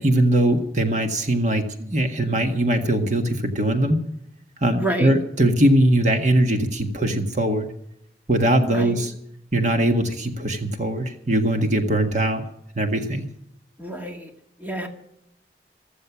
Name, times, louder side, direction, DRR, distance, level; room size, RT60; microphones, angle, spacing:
voice 1, 0.0-4.0 4.6-7.7 8.3-9.1 9.5-12.4 12.7-13.3, right 1 dB, 40° right, 5 dB, 1.7 m, -21 dB
voice 2, 4.8-5.1 8.7-9.1 13.8-14.3 14.6-14.9, right 1 dB, 10° right, 3 dB, 1.9 m, -28 dB
15.5 x 14.0 x 6.2 m, 0.74 s
head